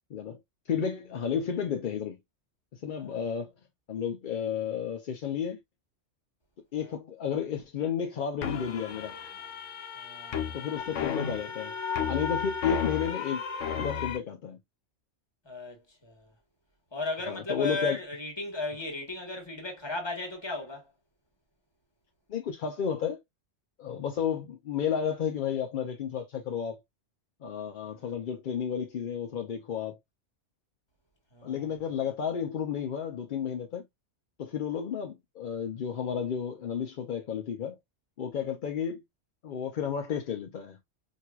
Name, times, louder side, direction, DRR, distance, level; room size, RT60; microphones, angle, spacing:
voice 1, 0.7-2.2 2.8-3.5 3.9-5.6 6.7-9.1 10.5-11.7 12.1-13.4 13.8-14.6 17.3-18.0 22.3-23.2 23.8-26.8 27.4-30.0 31.4-33.8 34.4-37.7 38.2-39.0 39.4-40.8, left 7 dB, 55° left, 0.6 m, -32 dB
sound 1, 8.4-14.2, left 7 dB, 90° left, 1.1 m, -33 dB
voice 2, 9.9-10.6 15.4-16.3 16.9-20.8 27.8-28.2 31.3-31.7, left 2 dB, 25° left, 1.3 m, -36 dB
4.5 x 2.7 x 2.3 m
omnidirectional pair, 1.2 m